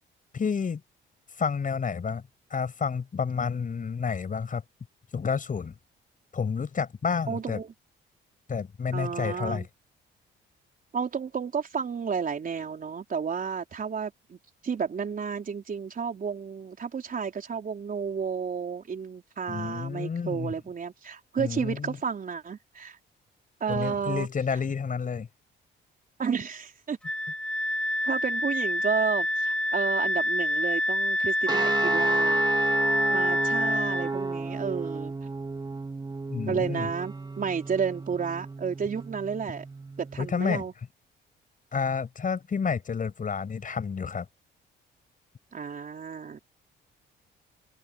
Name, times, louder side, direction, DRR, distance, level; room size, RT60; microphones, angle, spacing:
voice 1, 0.3-0.8 1.4-2.2 2.5-4.6 5.1-5.7 6.3-7.6 8.5-9.6 19.5-20.5 21.4-22.0 23.7-25.3 36.3-36.9 40.2-40.6 41.7-44.2, left 6 dB, 40° left, 6.7 m, -30 dB
voice 2, 7.3-7.7 8.9-9.7 10.9-23.0 23.6-24.6 26.2-27.0 28.0-32.5 33.1-35.1 36.5-39.6 40.0-40.7 45.5-46.4, right 6 dB, 45° right, 4.3 m, -32 dB
Wind instrument woodwind instrument, 27.0-34.1, left 1 dB, 5° left, 6.2 m, -26 dB
sound 1, 31.5-40.4, right 3 dB, 20° right, 2.5 m, -33 dB
cardioid pair, 90°, 20 cm